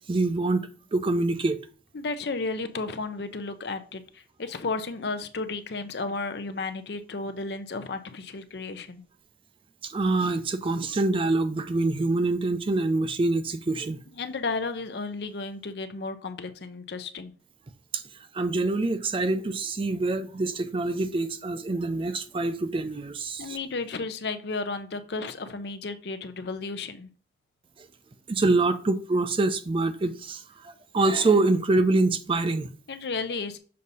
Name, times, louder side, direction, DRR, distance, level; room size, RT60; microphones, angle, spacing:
voice 1, 0.1-1.6 9.8-14.0 17.9-18.0 18.3-23.4 28.3-32.7, right 2 dB, 30° right, 0.4 m, -25 dB
voice 2, 1.9-9.0 14.1-17.3 23.4-27.1 32.9-33.6, left 3 dB, 65° left, 0.6 m, -33 dB
6.5 x 2.8 x 5.3 m
head